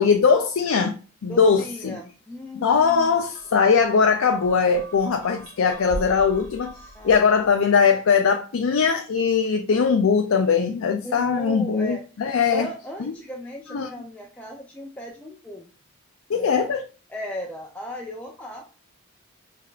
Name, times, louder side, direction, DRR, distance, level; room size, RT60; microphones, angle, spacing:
voice 1, 0.0-2.0 2.6-6.7 7.0-12.7 13.0-13.1 13.7-13.9 16.3-16.8, left 5 dB, 70° left, 0.4 m, -20 dB
voice 2, 1.3-3.2 6.9-7.6 11.0-12.0 12.5-15.7 16.3-16.6 17.1-18.6, equal, 5° left, 0.4 m, -37 dB
sound 1, 2.9-7.6, right 1 dB, 75° right, 1.6 m, -40 dB
4.9 x 3.3 x 2.4 m
head